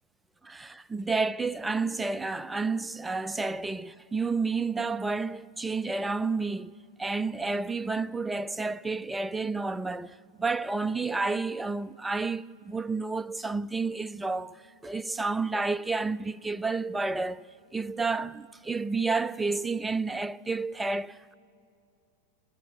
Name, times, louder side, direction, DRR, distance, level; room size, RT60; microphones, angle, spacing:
voice 1, 0.4-6.7 7.0-17.4 17.7-21.3, right 3 dB, 10° right, 0.4 m, -30 dB
28.5 x 10.5 x 9.7 m
figure-of-eight pair, 90°, 0 cm